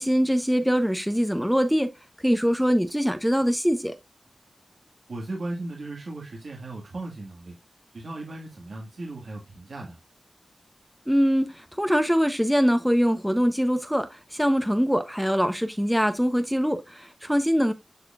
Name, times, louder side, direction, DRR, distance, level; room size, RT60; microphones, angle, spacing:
voice 1, 0.0-1.9 2.2-3.9 11.1-17.7, equal, ahead, 0.8 m, -23 dB
voice 2, 5.1-7.6 7.9-10.0, right 2 dB, 85° right, 1.8 m, -36 dB
11.5 x 4.3 x 2.4 m
wide cardioid pair, 95°, 0 cm